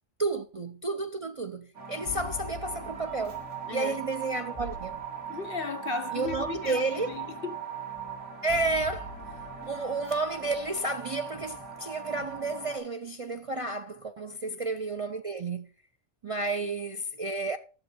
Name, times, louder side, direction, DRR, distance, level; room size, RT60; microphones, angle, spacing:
voice 1, 0.2-3.4 3.7-5.0 6.1-7.1 8.4-9.1 9.7-15.7 16.2-17.6, right 3 dB, 40° right, 0.5 m, -31 dB
sound 1, 1.7-12.8, right 7 dB, 80° right, 3.7 m, -40 dB
sound 2, 2.1-4.2 8.5-11.7, left 7 dB, 75° left, 1.1 m, -45 dB
voice 2, 3.7-4.0 5.3-7.5 14.5-14.6, left 5 dB, 55° left, 0.9 m, -36 dB
11.5 x 7.7 x 4.3 m
omnidirectional pair, 1.2 m